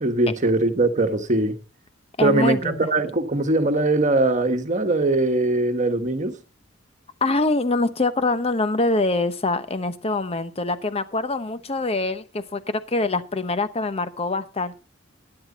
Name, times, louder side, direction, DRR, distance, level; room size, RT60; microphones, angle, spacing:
voice 1, 0.0-1.5 2.2-6.4, right 2 dB, 40° right, 1.4 m, -21 dB
voice 2, 2.2-2.9 7.2-14.8, left 2 dB, 30° left, 0.9 m, -24 dB
12.5 x 11.0 x 4.2 m
head